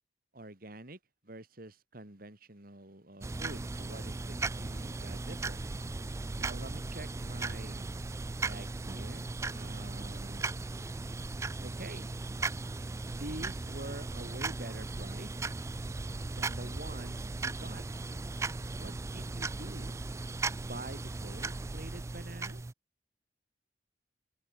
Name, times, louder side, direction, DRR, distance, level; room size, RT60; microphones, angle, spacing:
voice 1, 0.3-1.0 1.2-5.6 6.4-7.8 8.4-10.5 11.6-12.1 13.1-15.3 16.3-17.8 18.8-20.0 20.6-22.6, right 1 dB, 55° right, 3.5 m, -47 dB
sound 1, 3.2-22.7, right 3 dB, 15° right, 0.3 m, -37 dB
open air
head